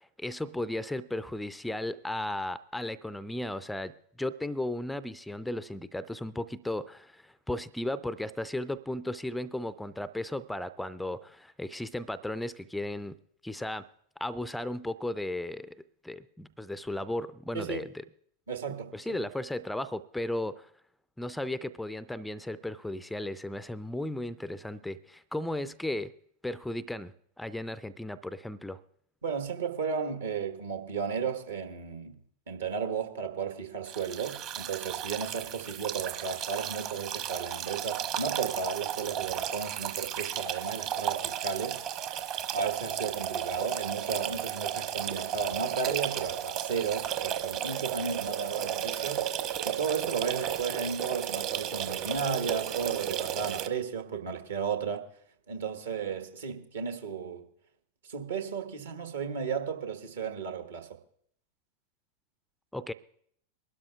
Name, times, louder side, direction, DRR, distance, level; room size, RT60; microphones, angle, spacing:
voice 1, 0.0-13.2 13.4-13.9 14.2-15.8 16.0-17.9 18.9-20.7 21.2-26.1 26.4-28.8 62.7-62.9, left 1 dB, 5° left, 0.4 m, -35 dB
voice 2, 18.5-19.2 29.2-32.2 32.5-41.8 42.5-49.3 49.6-55.1 55.5-57.4 58.0-60.9, right 6 dB, 65° right, 1.4 m, -34 dB
sound 1, 33.9-53.7, right 10 dB, 40° right, 1.1 m, -34 dB
23.0 x 12.5 x 2.4 m
figure-of-eight pair, 90°, 0 cm